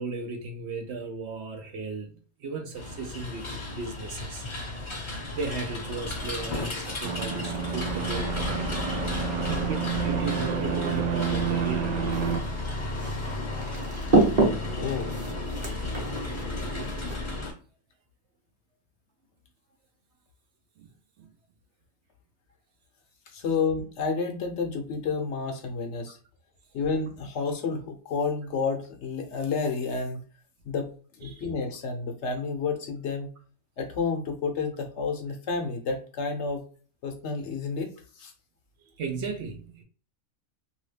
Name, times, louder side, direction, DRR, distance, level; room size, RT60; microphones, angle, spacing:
voice 1, 0.0-2.1 2.4-4.5 5.3-8.6 9.5-11.9 20.8-20.9 21.2-21.3 31.2-31.5 38.8-39.8, right 4 dB, 65° right, 0.7 m, -35 dB
sound 1, 2.7-17.5, left 2 dB, 30° left, 0.6 m, -33 dB
sound 2, 7.0-12.4, right 7 dB, 90° right, 0.3 m, -29 dB
sound 3, 12.1-17.2, right 2 dB, 35° right, 1.1 m, -28 dB
voice 2, 14.7-15.1 23.3-26.2 26.7-30.2 30.6-30.9 31.2-33.3 33.8-36.6 37.0-38.3, left 4 dB, 65° left, 0.9 m, -30 dB
2.8 x 2.6 x 3.2 m
omnidirectional pair, 1.4 m